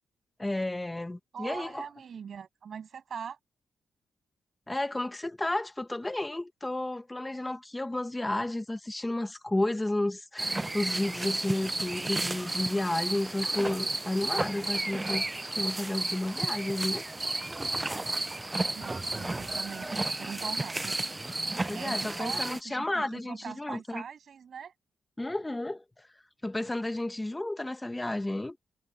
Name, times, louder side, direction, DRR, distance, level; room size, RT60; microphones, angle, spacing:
voice 1, 0.4-1.9 4.7-15.2 15.5-17.0 21.7-24.0 25.2-25.8 26.4-28.6, left 1 dB, 15° left, 1.4 m, -32 dB
voice 2, 1.3-3.4 18.7-21.0 21.4-24.7, right 7 dB, 60° right, 7.7 m, -42 dB
sound 1, 10.4-22.6, right 2 dB, 15° right, 0.4 m, -32 dB
cardioid pair, 105°, 0 cm